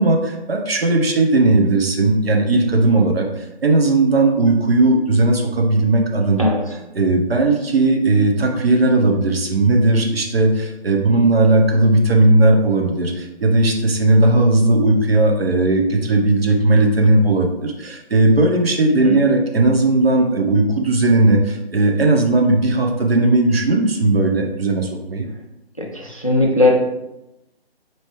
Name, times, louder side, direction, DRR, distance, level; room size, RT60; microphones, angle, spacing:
voice 1, 0.0-6.5 6.9-25.3, right 2 dB, 70° right, 3 dB, 0.8 m, -16 dB
voice 2, 25.8-26.9, left 2 dB, 35° left, 1 dB, 0.4 m, -18 dB
4.5 x 2.8 x 3.1 m, 0.93 s
hypercardioid pair, 175°, 31 cm